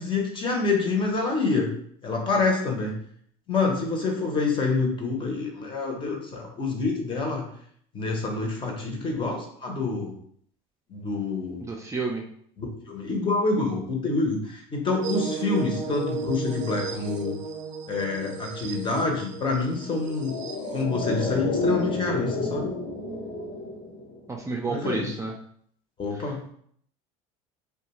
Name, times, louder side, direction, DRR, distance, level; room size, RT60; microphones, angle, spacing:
voice 1, 0.0-1.7 2.0-3.0 3.5-7.4 7.9-10.1 10.9-11.6 12.6-17.4 17.9-22.7 24.7-25.1 26.0-26.4, left 3 dB, 30° left, 1 dB, 0.8 m, -27 dB
voice 2, 11.6-12.2 24.3-25.3, right 4 dB, 20° right, 0 dB, 0.4 m, -30 dB
sound 1, 15.0-21.1, right 5 dB, 90° right, 0.4 m, -35 dB
sound 2, 20.0-24.5 24.8-24.9, left 2 dB, 65° left, 0.8 m, -30 dB
2.4 x 2.3 x 2.9 m, 0.64 s
supercardioid pair, 90°, 16 cm